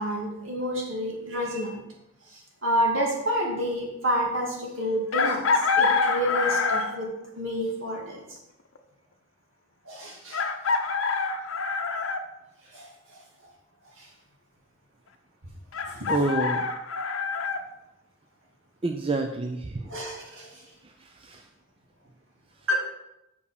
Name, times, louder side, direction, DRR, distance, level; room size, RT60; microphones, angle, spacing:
voice 1, 0.0-1.8 2.6-7.1 7.4-8.2 9.9-10.4 12.7-13.2 14.0-14.1 19.9-20.6 22.7-22.8, equal, 75° right, -1 dB, 2.4 m, -29 dB
Chicken rooster, 5.1-7.1 8.8-8.9 10.3-12.2 15.7-17.6, left 4 dB, 80° left, 0.8 m, -26 dB
voice 2, 16.1-16.6 18.8-19.8 21.2-21.4, right 2 dB, 30° right, 4 dB, 0.5 m, -27 dB
6.8 x 5.4 x 6.7 m, 0.88 s
head